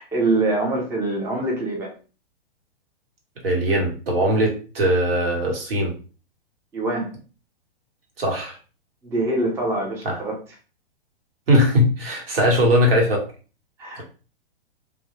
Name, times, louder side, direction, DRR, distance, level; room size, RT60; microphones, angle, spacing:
voice 1, 0.0-1.9 6.7-7.1 9.0-10.4 13.8-14.0, right 2 dB, 10° right, 0 dB, 0.4 m, -24 dB
voice 2, 3.4-5.9 8.2-8.6 10.0-10.2 11.5-13.2 14.0-14.1, equal, 75° right, 1 dB, 1.1 m, -20 dB
2.1 x 2.0 x 2.9 m, 0.35 s
hypercardioid pair, 115°, 30 cm